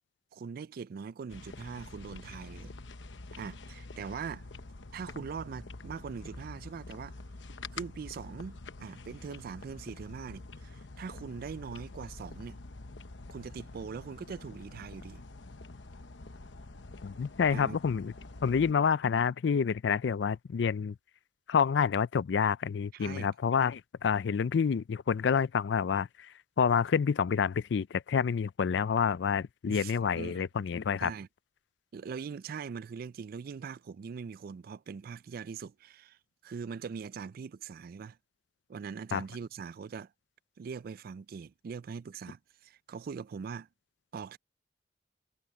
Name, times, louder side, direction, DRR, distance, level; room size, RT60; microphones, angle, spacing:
voice 1, 0.3-2.7 3.4-4.5 4.9-7.2 7.7-12.6 13.3-15.2 17.5-17.8 22.9-23.3 29.7-30.5 31.0-31.3 31.9-36.2 36.4-38.2 38.7-40.1 40.6-43.7 44.1-44.4, right 6 dB, 55° right, 0.3 m, -42 dB
sound 1, 1.3-18.7, left 3 dB, 90° left, 1.0 m, -47 dB
voice 2, 17.0-18.1 18.4-21.0 21.5-26.3 26.6-31.1 39.1-39.2, left 6 dB, 70° left, 0.4 m, -28 dB
head